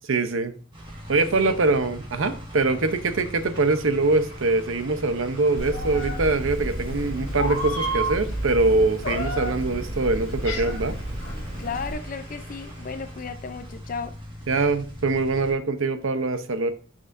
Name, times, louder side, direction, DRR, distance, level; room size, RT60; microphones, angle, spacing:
voice 1, 0.1-0.5 1.1-11.0 14.5-16.7, right 3 dB, 70° right, 0.7 m, -23 dB
sound 1, 0.7-15.5, equal, 25° right, 1.6 m, -41 dB
Domestic sounds home sounds, 3.5-13.5, right 2 dB, 50° right, 3.8 m, -49 dB
Meow, 5.6-11.9, equal, 65° left, 2.2 m, -30 dB
voice 2, 11.6-14.2, left 5 dB, 40° left, 0.5 m, -34 dB
7.9 x 6.1 x 2.5 m
head